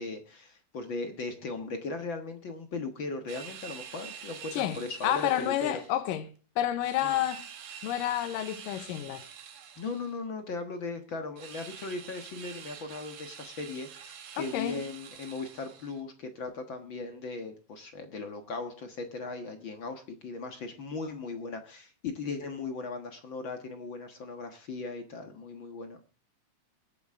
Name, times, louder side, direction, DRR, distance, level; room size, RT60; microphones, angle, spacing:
voice 1, 0.0-5.8 7.0-7.2 9.8-26.0, left 3 dB, 50° left, 1.6 m, -38 dB
sound 1, 3.3-6.0 6.8-10.2 11.4-16.0, right 8 dB, 75° right, 3.3 m, -47 dB
voice 2, 4.5-6.3 6.6-7.5 7.8-9.2 14.4-14.8, left 12 dB, 85° left, 2.7 m, -30 dB
22.5 x 8.7 x 3.6 m
omnidirectional pair, 3.9 m